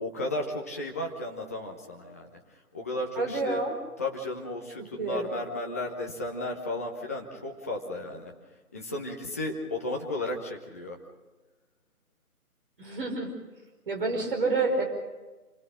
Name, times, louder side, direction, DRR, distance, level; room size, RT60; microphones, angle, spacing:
voice 1, 0.0-2.4 2.7-3.6 4.0-8.3 8.7-11.0, left 2 dB, 10° left, 0 dB, 0.9 m, -34 dB
voice 2, 3.2-3.7 5.0-5.3 12.8-13.3 13.9-14.8, right 3 dB, 35° right, 2 dB, 5.0 m, -28 dB
28.0 x 17.0 x 6.4 m, 1.2 s
figure-of-eight pair, 150°, 45 cm